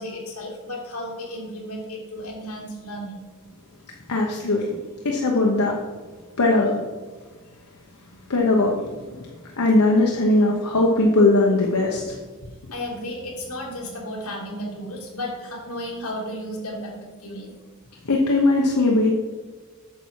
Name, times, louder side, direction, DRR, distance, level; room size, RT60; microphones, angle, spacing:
voice 1, 0.0-3.2 12.7-16.9 17.2-17.5, equal, 70° left, -3 dB, 2.7 m, -33 dB
voice 2, 4.1-4.8 5.0-5.8 6.4-6.8 8.3-9.3 9.6-12.1 18.0-19.1, left 2 dB, 85° left, -1 dB, 1.0 m, -19 dB
8.8 x 7.0 x 4.7 m, 1.4 s
head